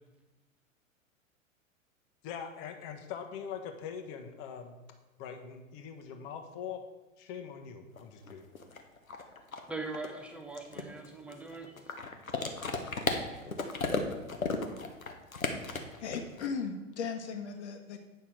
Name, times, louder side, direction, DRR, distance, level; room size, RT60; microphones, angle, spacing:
voice 1, 2.2-4.7 5.2-6.8 7.2-8.4, left 7 dB, 35° left, 6 dB, 1.1 m, -42 dB
sound 1, 8.0-8.1 8.3-16.5, left 4 dB, 85° left, 1.0 m, -35 dB
voice 2, 9.7-11.9, right 3 dB, 5° right, 4 dB, 0.7 m, -41 dB
voice 3, 16.0-18.0, left 5 dB, 55° left, 5 dB, 1.3 m, -37 dB
8.7 x 5.7 x 4.6 m, 1.1 s
figure-of-eight pair, 100°, 41 cm